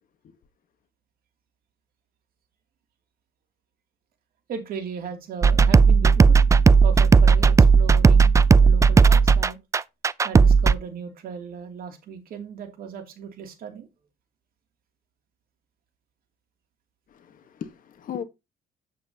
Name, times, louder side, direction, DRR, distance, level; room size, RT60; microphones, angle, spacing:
voice 1, 4.5-6.4 6.8-8.3 8.6-9.6 10.2-13.9, right 7 dB, 60° right, 2.6 m, -36 dB
sound 1, 5.4-10.7, right 5 dB, 20° right, 0.3 m, -15 dB
voice 2, 17.1-18.2, left 8 dB, 55° left, 1.3 m, -37 dB
8.8 x 7.4 x 2.8 m
cardioid pair, 110°, 17 cm